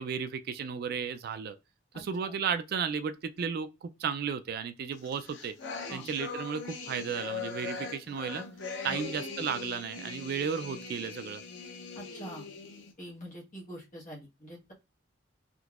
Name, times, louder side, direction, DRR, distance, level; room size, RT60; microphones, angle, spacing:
voice 1, 0.0-1.6 1.9-5.5 5.9-8.4 8.8-11.4, right 6 dB, 55° right, 0.3 m, -34 dB
voice 2, 1.9-2.4 5.9-6.1 8.8-9.0 11.9-12.5 13.0-14.7, equal, 45° left, 1.3 m, -45 dB
sound 1, 5.0-12.9, left 4 dB, 80° left, 0.7 m, -41 dB
3.8 x 2.6 x 2.3 m
head